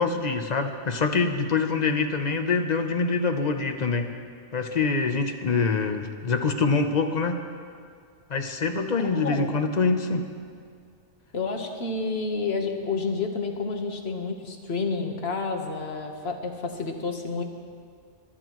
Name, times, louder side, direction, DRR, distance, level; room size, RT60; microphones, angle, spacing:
voice 1, 0.0-4.1 4.5-7.4 8.3-10.3, left 4 dB, 40° left, 6 dB, 0.8 m, -25 dB
voice 2, 9.1-9.6 11.3-17.4, left 4 dB, 60° left, 3 dB, 1.4 m, -30 dB
24.5 x 12.5 x 3.1 m, 2.2 s
omnidirectional pair, 1.2 m